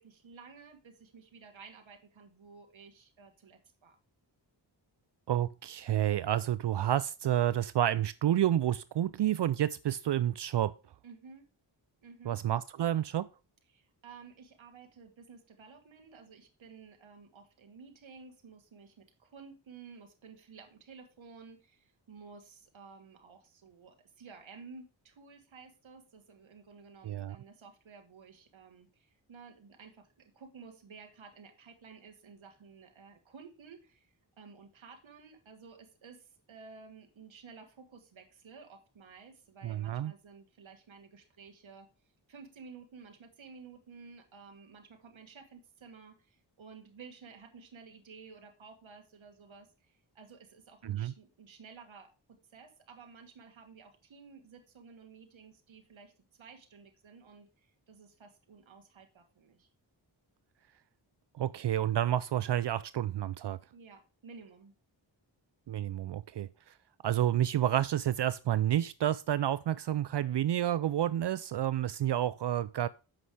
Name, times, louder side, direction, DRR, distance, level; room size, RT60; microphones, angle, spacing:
voice 1, 0.0-4.0 11.0-11.5 12.0-12.4 13.7-41.9 42.3-59.7 63.7-64.7, right 5 dB, 85° right, 1.5 m, -53 dB
voice 2, 5.3-10.7 12.3-13.3 27.0-27.4 39.6-40.1 50.8-51.1 61.4-63.6 65.7-66.5 67.0-72.9, right 11 dB, 65° right, 0.5 m, -29 dB
7.7 x 5.7 x 4.8 m
cardioid pair, 55°, 45 cm